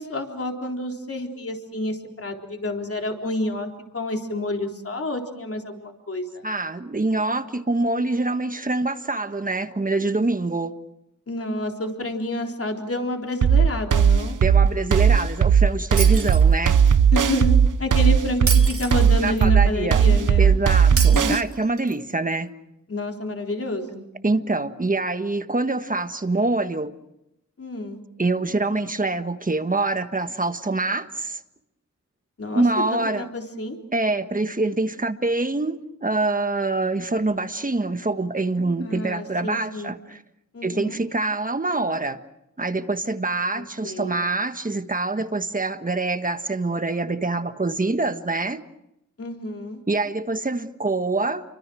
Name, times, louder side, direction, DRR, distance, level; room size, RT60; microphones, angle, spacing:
voice 1, 0.0-6.5 11.3-14.4 17.1-20.5 20.9-21.4 22.9-24.1 27.6-28.0 32.4-32.6 32.9-33.8 38.8-40.0 40.5-41.0 43.5-44.2 49.2-49.8, left 1 dB, 45° left, 3.8 m, -29 dB
voice 2, 6.4-10.8 14.4-16.7 19.2-20.0 20.4-22.5 24.2-26.9 28.2-31.4 32.5-33.3 33.9-40.2 40.6-42.2 42.6-48.6 49.9-51.5, right 2 dB, 25° right, 1.4 m, -25 dB
sound 1, 13.4-21.4, right 7 dB, 75° right, 0.9 m, -17 dB
Shatter, 16.0-16.9 18.5-19.5 21.0-22.0, right 4 dB, 45° right, 2.1 m, -30 dB
29.5 x 24.5 x 6.3 m
wide cardioid pair, 110°, 32 cm